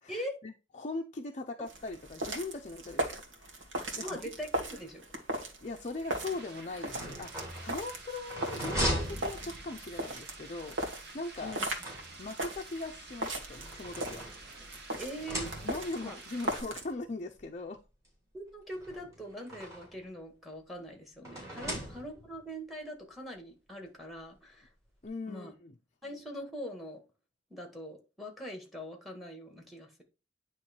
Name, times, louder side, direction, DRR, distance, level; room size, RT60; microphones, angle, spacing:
voice 1, 0.0-3.6 3.9-4.3 5.6-10.8 11.1-11.6 12.2-14.2 15.6-17.8 21.7-22.0 25.0-25.7, left 3 dB, 40° left, 0.5 m, -40 dB
sound 1, 1.7-16.9, right 1 dB, 80° right, 1.5 m, -39 dB
voice 2, 4.0-5.0 11.4-11.6 15.0-15.5 16.0-16.2 18.3-24.7 25.3-25.5 26.0-27.0 27.5-30.0, equal, ahead, 1.7 m, -42 dB
sound 2, 5.6-16.6, right 3 dB, 60° right, 1.5 m, -50 dB
sound 3, 6.7-10.0 11.3-12.5 13.3-14.7 15.1-16.0 17.0-17.1 17.4-17.5 18.7-20.0 21.2-22.4, equal, 15° right, 3.2 m, -38 dB
9.3 x 3.1 x 4.4 m
head